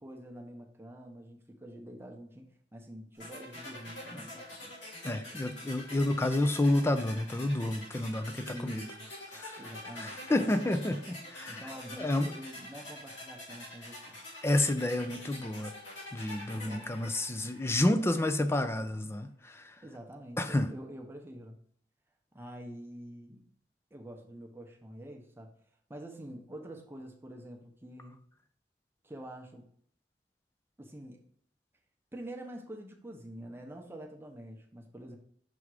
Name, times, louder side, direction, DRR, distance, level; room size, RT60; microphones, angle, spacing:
voice 1, 0.0-4.6 8.5-9.1 9.6-10.6 11.5-14.2 16.6-16.9 19.8-21.6 22.3-23.4 23.9-25.5 25.9-28.2 29.0-29.7 30.8-31.2 32.1-35.2, right 1 dB, 15° right, 2 dB, 0.8 m, -46 dB
sound 1, 3.2-18.1, left 1 dB, 90° left, 2.4 m, -46 dB
voice 2, 5.0-8.9 9.3-9.6 9.9-11.7 12.0-12.3 14.4-15.7 16.1-19.8 20.4-20.7, left 1 dB, 15° left, 9 dB, 0.4 m, -30 dB
6.1 x 3.5 x 4.8 m, 0.64 s
head